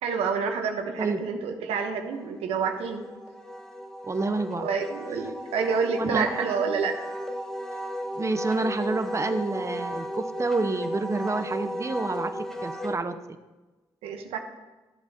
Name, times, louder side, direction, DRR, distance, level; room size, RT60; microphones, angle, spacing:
voice 1, 0.0-3.0 4.6-6.9 14.0-14.4, right 5 dB, 90° right, 5 dB, 1.1 m, -28 dB
Wind instrument woodwind instrument, 1.9-12.9, equal, 5° left, 1.5 m, -35 dB
voice 2, 4.0-4.7 6.0-6.6 8.2-13.2, right 3 dB, 30° right, 9 dB, 0.9 m, -28 dB
13.5 x 7.9 x 2.9 m, 1.1 s
supercardioid pair, 60°, 10 cm